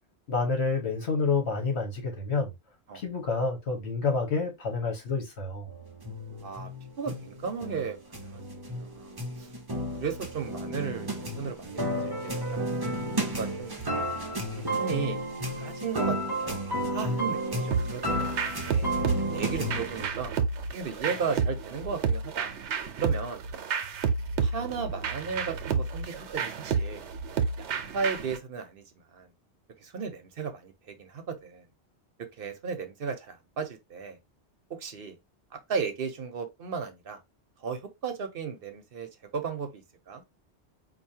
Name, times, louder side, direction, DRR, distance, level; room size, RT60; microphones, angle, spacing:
voice 1, 0.3-2.5 2.9-5.7, left 4 dB, 70° left, 1.6 m, -28 dB
sound 1, 5.7-20.1, right 1 dB, 25° right, 0.8 m, -32 dB
voice 2, 7.0-8.4 8.7-12.6 13.2-13.8 14.6-15.2 15.6-16.2 16.4-18.9 19.3-20.3 20.7-22.5 23.0-23.4 24.4-27.1 27.6-28.8 29.1-29.3 29.8-31.6 32.2-34.2 34.8-35.2 35.5-37.2 37.6-40.2, right 5 dB, 60° right, 1.0 m, -35 dB
sound 2, 17.7-28.4, right 5 dB, 85° right, 1.0 m, -31 dB
4.6 x 2.7 x 2.7 m
omnidirectional pair, 1.1 m